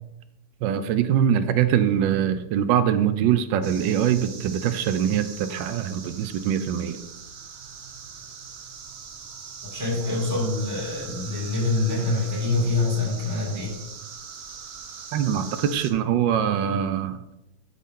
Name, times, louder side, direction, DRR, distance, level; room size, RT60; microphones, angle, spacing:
voice 1, 0.6-7.0 15.1-17.2, right 9 dB, 80° right, 11 dB, 1.3 m, -23 dB
sound 1, 3.6-15.9, right 6 dB, 60° right, 0.6 m, -41 dB
voice 2, 9.6-13.7, left 3 dB, 10° right, -5 dB, 2.4 m, -25 dB
12.0 x 4.0 x 3.7 m, 0.94 s
omnidirectional pair, 2.0 m